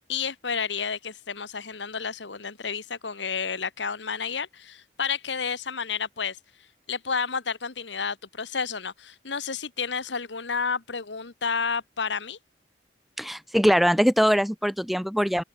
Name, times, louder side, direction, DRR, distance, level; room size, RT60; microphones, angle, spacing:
voice 1, 0.0-6.4 6.9-12.4, left 5 dB, 85° left, 1.6 m, -31 dB
voice 2, 13.2-15.4, equal, ahead, 1.5 m, -22 dB
open air
head